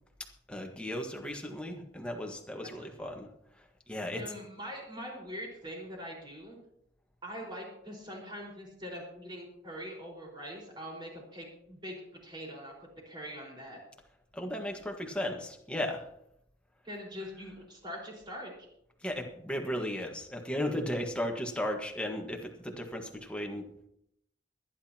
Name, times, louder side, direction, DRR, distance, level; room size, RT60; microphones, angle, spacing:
voice 1, 0.5-3.3 3.9-4.2 14.3-16.1 19.0-23.9, left 1 dB, 5° left, 2 dB, 1.5 m, -35 dB
voice 2, 2.5-3.1 4.1-6.6 7.2-11.9 12.2-12.7 13.0-13.8 16.8-18.5, equal, 25° right, -1 dB, 4.8 m, -43 dB
25.0 x 10.5 x 2.9 m, 0.76 s
head